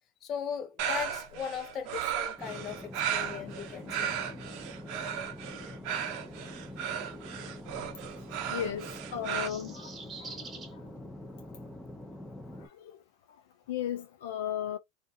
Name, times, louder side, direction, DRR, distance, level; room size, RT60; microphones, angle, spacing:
voice 1, 0.2-2.8 3.1-4.2, left 7 dB, 45° left, 0.7 m, -38 dB
sound 1, 0.8-9.5, right 9 dB, 60° right, 0.6 m, -35 dB
sound 2, 2.4-12.7, left 1 dB, 10° left, 0.6 m, -45 dB
voice 2, 8.5-9.9 10.2-10.4 12.6-12.9 13.7-14.8, left 10 dB, 75° left, 0.3 m, -35 dB
sound 3, 9.0-10.7, right 4 dB, 25° right, 1.0 m, -45 dB
2.5 x 2.4 x 2.5 m
hypercardioid pair, 95°, 0 cm